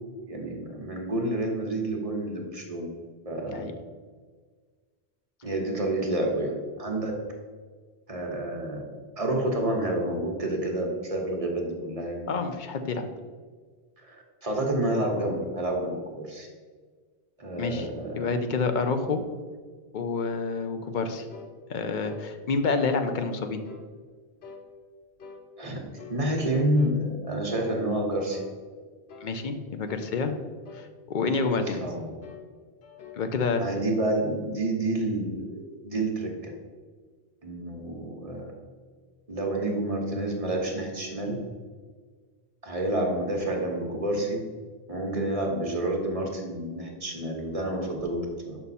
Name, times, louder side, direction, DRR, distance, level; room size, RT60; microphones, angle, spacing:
voice 1, 0.3-2.9 3.2-3.7 5.4-7.2 8.1-8.8 9.2-12.3 14.0-16.5 17.4-18.3 19.0-19.2 25.6-25.8 26.1-28.4 31.8-32.1 33.6-36.5 37.4-38.5 39.3-41.4 42.6-44.4 44.9-48.6, right 1 dB, 35° right, 0 dB, 1.1 m, -29 dB
voice 2, 12.3-13.0 17.6-17.9 18.2-19.2 19.9-21.3 21.7-23.6 29.2-30.3 30.7-31.8 33.2-33.6, left 4 dB, 55° left, 7 dB, 0.7 m, -28 dB
sound 1, 21.3-21.6 22.1-22.3 22.9-23.1 23.6-23.9 24.4-24.7 25.2-25.4 26.0-26.2 26.8-27.0 27.5-27.8 28.3-28.6 29.1-29.3 29.9-30.1 30.6-30.9 31.4-31.7 32.2-32.5 32.8-33.2, left 4 dB, 80° left, 1.0 m, -46 dB
5.9 x 5.5 x 4.1 m, 1.5 s
omnidirectional pair, 1.1 m